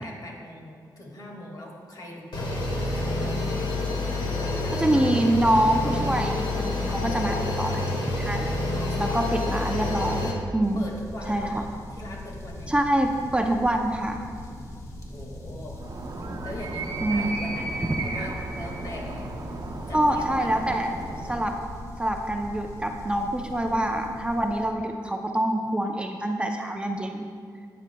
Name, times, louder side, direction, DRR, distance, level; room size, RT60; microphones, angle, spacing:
voice 1, 0.0-3.4 4.3-5.3 8.1-8.2 8.7-9.2 10.7-12.7 15.1-15.8 16.4-19.3 19.9-20.6, left 1 dB, 55° left, -1 dB, 2.0 m, -41 dB
sound 1, 2.3-10.3, left 2 dB, 80° left, 1.7 m, -28 dB
voice 2, 4.7-8.5 9.0-10.9 11.3-11.6 12.7-14.2 17.0-17.3 19.9-20.9 21.2-21.6 22.0-27.3, right 1 dB, 15° right, 3 dB, 0.6 m, -25 dB
sound 2, 10.6-24.7, left 1 dB, 40° left, 1.3 m, -40 dB
Animal, 15.8-21.6, right 3 dB, 60° right, 0.8 m, -35 dB
12.5 x 9.5 x 2.3 m, 2.1 s
wide cardioid pair, 90°, 8 cm